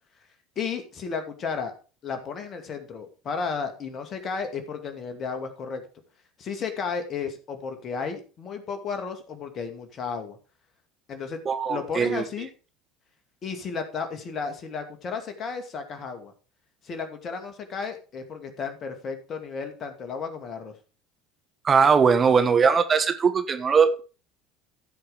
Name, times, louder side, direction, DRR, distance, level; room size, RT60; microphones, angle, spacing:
voice 1, 0.6-1.7 2.0-5.9 6.4-10.4 11.1-11.4 11.7-12.5 13.4-16.3 16.8-20.7, left 5 dB, 40° left, 6 dB, 2.3 m, -33 dB
voice 2, 11.4-12.2 21.6-24.0, right 6 dB, 30° right, 8 dB, 1.4 m, -20 dB
15.0 x 5.2 x 5.0 m, 0.36 s
hypercardioid pair, 70°, 0 cm